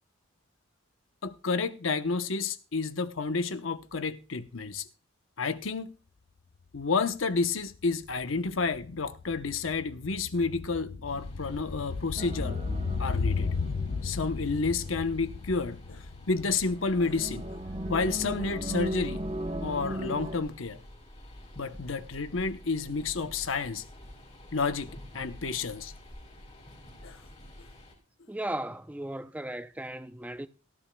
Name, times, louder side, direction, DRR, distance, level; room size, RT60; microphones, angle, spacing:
voice 1, 1.2-4.9 5.4-5.9 6.7-12.6 13.0-13.5 14.0-17.5 17.9-19.2 19.6-20.8 21.6-23.8 24.5-25.9 27.0-27.2, left 4 dB, 85° left, 0.9 m, -30 dB
sound 1, 6.7-6.8 7.1-17.5 17.7-17.8, left 4 dB, 65° left, 0.5 m, -35 dB
sound 2, 11.1-27.9, equal, 35° left, 4.8 m, -48 dB
sound 3, 12.2-14.9 16.5-20.4, right 1 dB, 30° right, 0.9 m, -37 dB
voice 2, 28.3-30.5, right 1 dB, 10° right, 0.6 m, -36 dB
17.5 x 14.5 x 2.3 m
head